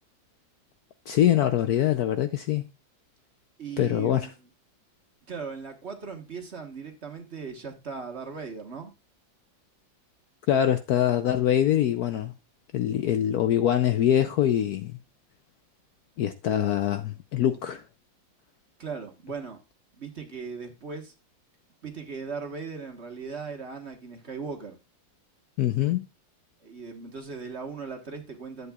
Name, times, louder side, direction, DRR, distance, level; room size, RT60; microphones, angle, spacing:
voice 1, 1.1-2.7 3.8-4.3 10.5-12.3 12.7-14.9 16.2-17.8 25.6-26.1, left 11 dB, 70° left, 1.0 m, -24 dB
voice 2, 3.6-4.3 5.3-8.9 18.8-19.6 19.9-21.1 21.8-24.8 26.6-28.7, right 5 dB, 40° right, 1.4 m, -38 dB
11.0 x 8.1 x 2.3 m
omnidirectional pair, 2.0 m